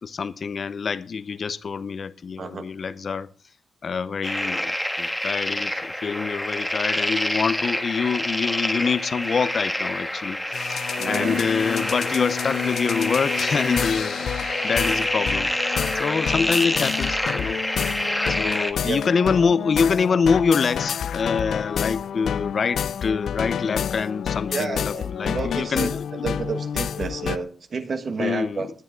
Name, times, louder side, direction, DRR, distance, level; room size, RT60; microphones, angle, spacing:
voice 1, 0.0-3.3 3.8-15.5 15.9-17.6 18.3-26.0 28.2-28.6, left 5 dB, 45° left, 0.8 m, -25 dB
voice 2, 2.4-2.7 11.0-11.5 18.8-19.0 24.5-28.7, right 4 dB, 45° right, 1.6 m, -30 dB
sound 1, 4.2-18.7, left 1 dB, 5° left, 1.5 m, -27 dB
sound 2, 10.5-27.4, left 8 dB, 70° left, 0.6 m, -29 dB
19.0 x 10.5 x 3.8 m
wide cardioid pair, 145°, 0 cm